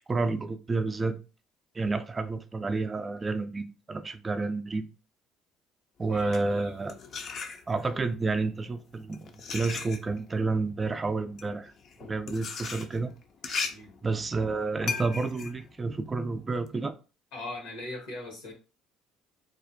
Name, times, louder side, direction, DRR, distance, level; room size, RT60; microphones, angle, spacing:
voice 1, 0.1-1.2 1.7-4.9 6.0-7.0 7.7-11.7 12.0-13.1 13.4-13.6 14.0-17.0, right 3 dB, 25° right, 0.3 m, -30 dB
voice 2, 6.1-6.7 13.7-13.9 17.3-18.5, left 2 dB, 90° left, 1.1 m, -40 dB
sound 1, 6.1-8.0 8.8-16.7, left 5 dB, 55° left, 0.4 m, -38 dB
2.4 x 2.1 x 2.7 m
supercardioid pair, 90°, 0 cm